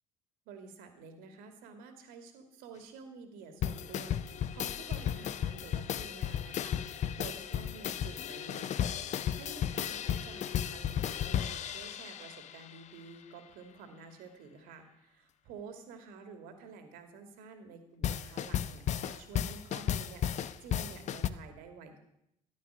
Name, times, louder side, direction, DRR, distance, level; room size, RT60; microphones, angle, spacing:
voice 1, 0.5-22.0, right 5 dB, 60° right, 6 dB, 2.5 m, -50 dB
sound 1, 3.6-12.8 18.0-21.3, left 9 dB, 45° left, 0.8 m, -34 dB
14.5 x 11.5 x 6.4 m, 0.79 s
figure-of-eight pair, 55°, 17 cm